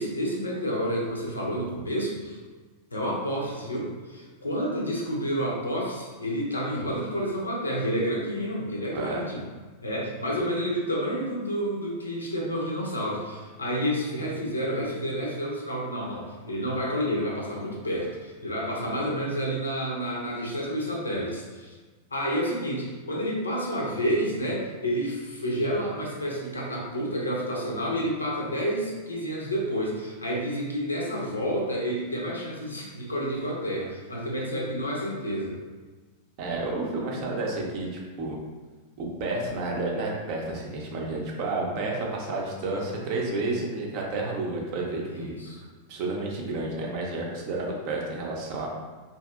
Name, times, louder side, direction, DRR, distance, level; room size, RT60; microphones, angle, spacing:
voice 1, 0.0-2.4 2.9-9.4 9.8-21.7 22.1-35.6 45.1-45.6, equal, 80° left, -2 dB, 0.5 m, -29 dB
voice 2, 36.4-38.4 39.0-45.3 45.9-48.7, right 2 dB, 45° right, -1 dB, 0.5 m, -30 dB
2.6 x 2.5 x 2.3 m, 1.3 s
figure-of-eight pair, 90°, 0 cm